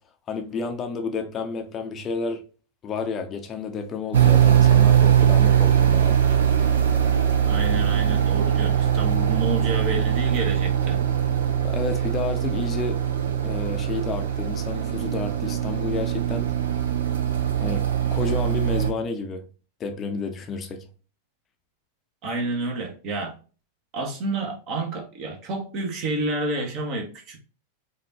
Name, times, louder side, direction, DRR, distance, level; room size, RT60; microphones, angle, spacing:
voice 1, 0.3-2.4 2.8-6.2 10.9-11.1 11.6-13.0 13.3-16.9 17.6-19.4 19.8-20.9, left 4 dB, 25° left, 0.7 m, -31 dB
sound 1, 4.1-18.9, right 9 dB, 65° right, 0.6 m, -21 dB
voice 2, 7.4-11.0 22.2-23.3 23.9-27.4, right 2 dB, 40° right, 1.2 m, -29 dB
5.0 x 2.6 x 2.8 m
figure-of-eight pair, 90°, 0 cm